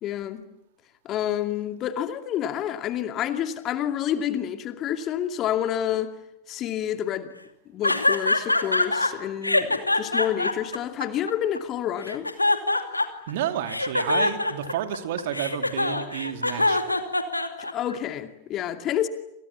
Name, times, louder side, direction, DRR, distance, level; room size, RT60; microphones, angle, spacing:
voice 1, 0.0-0.5 1.0-6.1 6.5-7.3 7.7-12.3 17.6-19.1, left 10 dB, 35° left, 2.5 m, -28 dB
sound 1, 7.8-9.1 9.4-11.6 12.0-13.3 13.7-17.9, left 2 dB, 85° left, 2.7 m, -23 dB
voice 2, 13.3-17.1, right 10 dB, 55° right, 2.8 m, -31 dB
28.5 x 28.5 x 7.3 m
figure-of-eight pair, 90°, 0 cm